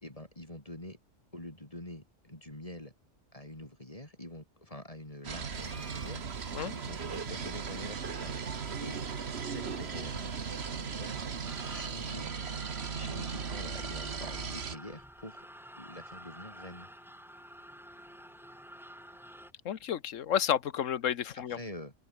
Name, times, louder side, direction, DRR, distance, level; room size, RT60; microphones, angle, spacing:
voice 1, 0.0-1.0 1.3-2.9 3.3-8.4 8.8-9.0 9.4-10.4 10.8-11.2 11.7-12.3 12.9-15.5 15.8-16.9 21.3-21.9, left 1 dB, 30° left, 4.2 m, -46 dB
sound 1, 5.2-14.8, right 6 dB, 60° right, 1.6 m, -37 dB
sound 2, 5.5-12.1, right 1 dB, 40° right, 4.9 m, -59 dB
sound 3, 11.4-19.5, equal, ahead, 2.1 m, -49 dB
voice 2, 19.6-21.6, left 9 dB, 85° left, 1.3 m, -31 dB
open air
omnidirectional pair, 1.3 m